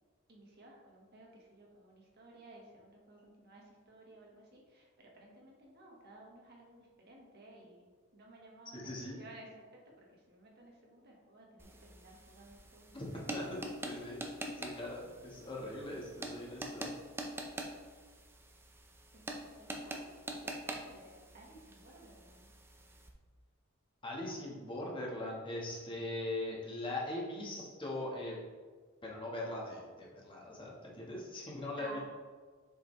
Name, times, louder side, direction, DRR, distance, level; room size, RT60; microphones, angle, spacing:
voice 1, 0.3-9.5 9.8-13.7 19.1-22.5 31.8-32.0, right 2 dB, 50° right, -2 dB, 1.3 m, -56 dB
voice 2, 8.7-9.2 12.9-13.0 13.3-16.9 24.0-28.4 29.0-32.0, left 1 dB, 25° left, -4 dB, 1.4 m, -41 dB
sound 1, 11.6-23.1, right 1 dB, 10° right, 0.6 m, -45 dB
6.9 x 5.0 x 3.2 m, 1.5 s
head